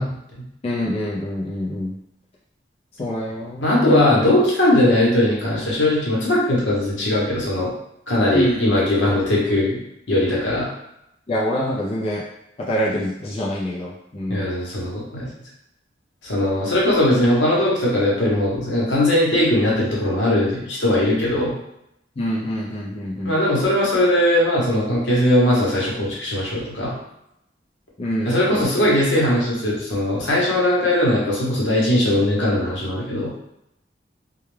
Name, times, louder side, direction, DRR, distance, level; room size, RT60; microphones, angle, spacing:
voice 1, 0.0-0.4 3.6-7.7 8.1-9.8 10.1-10.7 14.3-15.3 16.2-21.6 23.2-26.9 28.2-33.3, left 1 dB, 85° left, -4 dB, 0.9 m, -19 dB
voice 2, 0.6-1.9 3.0-4.1 8.3-8.6 11.3-12.2 12.7-14.5 22.2-23.3 28.0-28.3, equal, 30° left, -5 dB, 0.4 m, -25 dB
2.3 x 2.1 x 3.1 m, 0.82 s
head